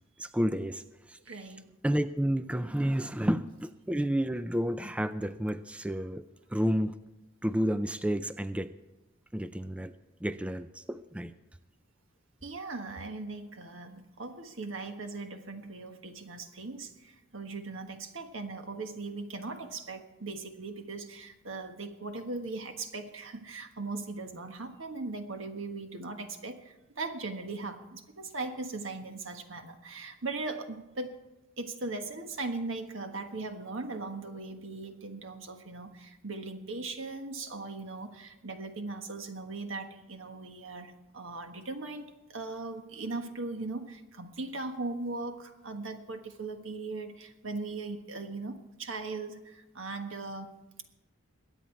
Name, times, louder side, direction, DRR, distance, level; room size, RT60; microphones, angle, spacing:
voice 1, 0.2-0.8 1.1-1.2 1.8-7.0 7.4-8.7 9.3-9.9 10.2-11.3, equal, 5° right, 11 dB, 0.3 m, -30 dB
voice 2, 1.3-1.7 12.4-31.2 31.6-50.8, right 3 dB, 75° right, 6 dB, 1.4 m, -39 dB
22.0 x 9.0 x 4.6 m, 1.0 s
head